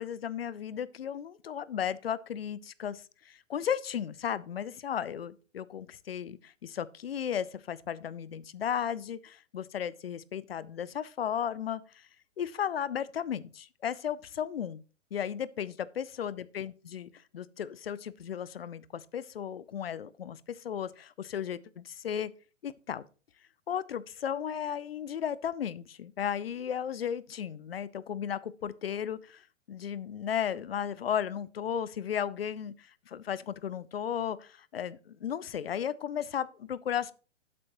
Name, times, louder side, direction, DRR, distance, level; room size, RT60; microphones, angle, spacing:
voice 1, 0.0-12.1 12.4-14.8 15.1-22.3 22.6-23.0 23.7-37.1, left 9 dB, 50° left, 0.6 m, -35 dB
12.5 x 7.7 x 3.0 m
figure-of-eight pair, 125°, 37 cm